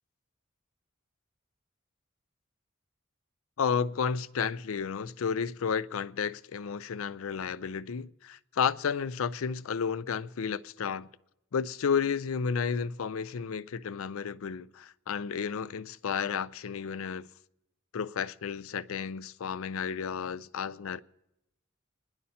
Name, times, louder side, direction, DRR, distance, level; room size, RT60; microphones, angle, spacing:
voice 1, 3.6-11.1 11.5-17.3 17.9-21.0, left 6 dB, 85° left, 0.4 m, -32 dB
28.5 x 10.5 x 4.2 m
head